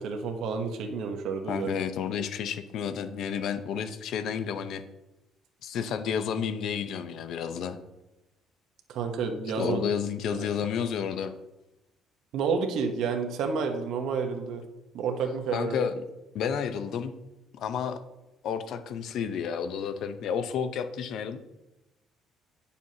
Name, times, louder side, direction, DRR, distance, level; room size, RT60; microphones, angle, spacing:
voice 1, 0.0-1.7 8.9-9.8 10.3-10.5 12.3-14.6 14.9-15.8, right 5 dB, 70° right, 4 dB, 1.0 m, -30 dB
voice 2, 1.5-4.8 5.6-7.8 9.6-11.3 15.5-16.0 16.3-17.2 17.5-18.0 18.4-21.4, left 7 dB, 65° left, 10 dB, 0.7 m, -31 dB
9.3 x 6.9 x 2.8 m, 0.99 s
cardioid pair, 130°, 0 cm